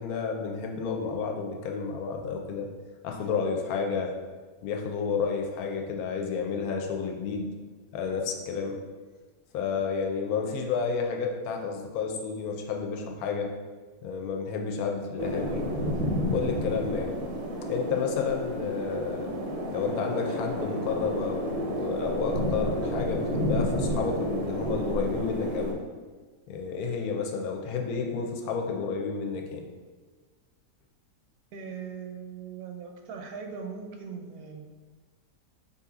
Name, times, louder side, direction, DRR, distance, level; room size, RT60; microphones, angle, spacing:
voice 1, 0.0-2.7 3.0-4.1 4.6-7.5 7.9-8.8 9.5-13.5 14.0-15.7 16.3-17.2 17.7-19.3 19.7-25.8 26.5-29.7, left 5 dB, 80° left, 2 dB, 1.1 m, -31 dB
sound 1, 15.2-25.7, equal, 60° right, 0.7 m, -31 dB
voice 2, 31.5-34.7, right 6 dB, 80° right, 4 dB, 1.1 m, -40 dB
4.1 x 2.8 x 3.6 m, 1.4 s
omnidirectional pair, 1.5 m